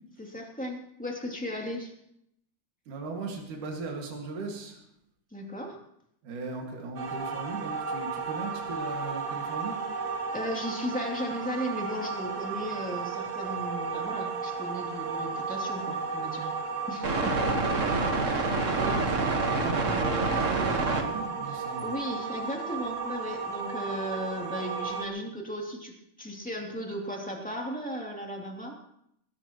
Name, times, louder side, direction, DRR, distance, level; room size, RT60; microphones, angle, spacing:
voice 1, 0.2-1.9 5.3-5.8 10.3-16.5 16.9-17.5 18.3-19.0 21.5-28.7, equal, 5° left, 0 dB, 2.4 m, -36 dB
voice 2, 2.9-4.8 6.2-9.8 17.6-17.7 18.5-21.8, right 3 dB, 70° right, 0 dB, 3.6 m, -38 dB
sound 1, 7.0-25.1, right 4 dB, 50° right, 0.9 m, -31 dB
20.5 x 17.5 x 3.1 m, 0.74 s
omnidirectional pair, 3.8 m